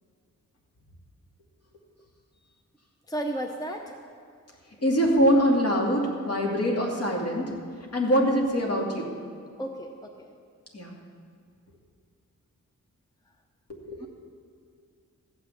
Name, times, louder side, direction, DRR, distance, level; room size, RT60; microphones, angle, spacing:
voice 1, 3.1-3.8 9.6-9.9 10.2-10.3 14.0-14.1, right 1 dB, 15° left, 3 dB, 0.7 m, -32 dB
voice 2, 4.8-7.5 7.9-9.1 10.7-10.9 13.7-14.1, equal, 50° left, -1 dB, 2.5 m, -24 dB
14.5 x 6.2 x 8.8 m, 2.3 s
wide cardioid pair, 120°, 30 cm